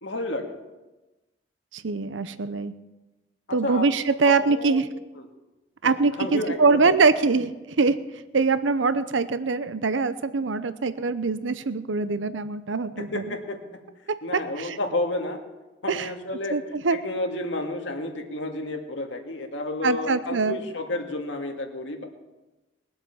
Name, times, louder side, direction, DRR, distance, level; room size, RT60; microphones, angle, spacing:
voice 1, 0.0-0.6 3.5-3.8 4.2-4.8 5.1-5.3 5.8-7.0 13.0-13.8 14.2-15.4 15.8-16.6 16.9-22.0, left 2 dB, 80° left, 3 dB, 2.1 m, -31 dB
voice 2, 1.7-2.7 3.5-4.9 5.8-13.4 14.3-14.8 15.9-16.1 16.5-17.0 19.8-20.6, right 4 dB, 90° right, 13 dB, 0.7 m, -23 dB
21.0 x 7.9 x 7.2 m, 1.1 s
head